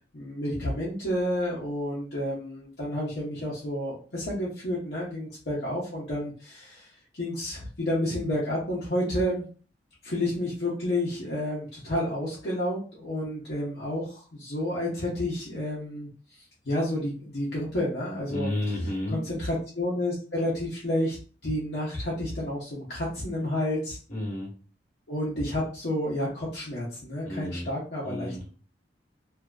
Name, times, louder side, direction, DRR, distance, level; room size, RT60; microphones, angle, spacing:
voice 1, 0.1-9.4 10.0-16.1 16.6-18.5 19.1-21.2 21.4-24.0 25.1-28.4, left 1 dB, 60° left, -7 dB, 0.8 m, -30 dB
voice 2, 18.3-19.2 24.1-24.5 27.2-27.7 28.0-28.5, left 1 dB, 45° left, -3 dB, 1.1 m, -31 dB
2.7 x 2.5 x 2.3 m, 0.39 s
head